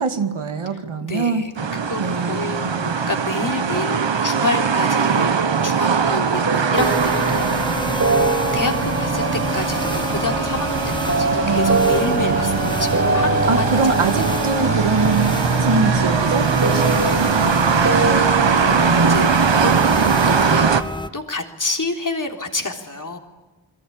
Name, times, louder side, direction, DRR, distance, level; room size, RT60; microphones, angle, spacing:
voice 1, 0.0-1.4 2.0-3.1 8.1-8.3 11.3-12.8 13.5-18.1, right 4 dB, 85° right, 6 dB, 2.4 m, -24 dB
voice 2, 1.0-1.5 1.9-5.4 5.6-8.0 8.5-13.9 18.7-19.2 19.5-20.7 21.1-23.2, left 2 dB, 40° left, 3 dB, 3.7 m, -28 dB
sound 1, 1.6-20.8, right 6 dB, 65° right, 1.5 m, -21 dB
sound 2, 6.3-19.3, right 2 dB, 35° right, 5.5 m, -25 dB
sound 3, 6.8-21.1, left 1 dB, 10° left, 1.0 m, -28 dB
29.5 x 22.5 x 9.0 m, 1.1 s
cardioid pair, 50°, 48 cm